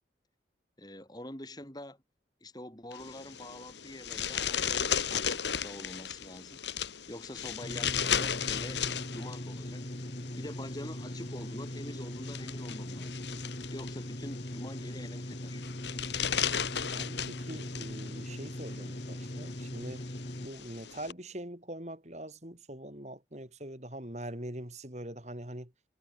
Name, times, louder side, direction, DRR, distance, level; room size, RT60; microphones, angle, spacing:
voice 1, 0.8-2.0 2.4-6.6 7.1-9.9 10.4-13.2 13.7-15.6, left 1 dB, 20° left, 4.3 m, -45 dB
sound 1, 2.9-21.1, left 8 dB, 75° left, 1.9 m, -36 dB
sound 2, 7.6-20.5, equal, 40° left, 2.4 m, -40 dB
voice 2, 16.9-20.1 20.4-25.7, right 1 dB, 40° right, 3.8 m, -43 dB
head